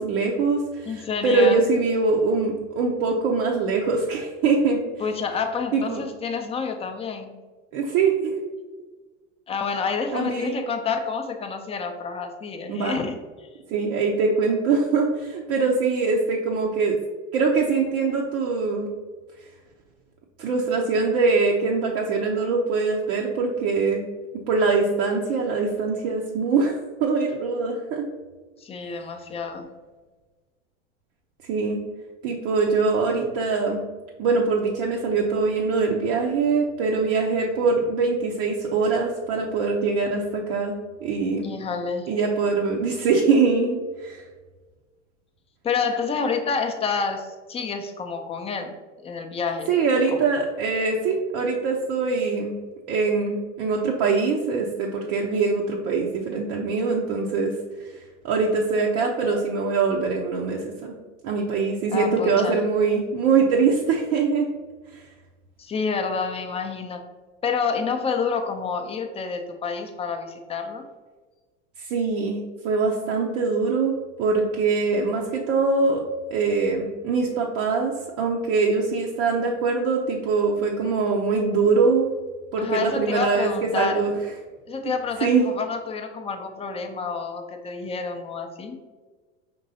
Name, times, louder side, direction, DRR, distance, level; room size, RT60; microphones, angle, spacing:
voice 1, 0.0-4.8 5.7-6.0 7.7-8.4 10.1-10.6 12.7-13.0 13.7-17.0 17.3-18.9 20.4-24.0 24.5-26.7 27.0-28.1 31.5-31.8 32.2-33.8 34.2-41.5 42.1-44.2 49.7-52.6 52.9-57.5 58.2-61.0 61.2-64.5 64.9-65.0 71.8-76.0 76.3-82.1 82.5-84.1 85.2-85.4, right 4 dB, 60° right, -1 dB, 0.7 m, -23 dB
voice 2, 0.9-1.6 5.0-7.4 9.5-13.2 28.6-29.7 41.4-42.1 45.6-48.8 49.0-49.7 61.9-62.6 65.6-67.0 67.4-70.9 82.6-84.0 84.7-88.8, left 5 dB, 15° left, 5 dB, 0.5 m, -28 dB
5.2 x 2.9 x 2.7 m, 1.3 s
hypercardioid pair, 90°, 37 cm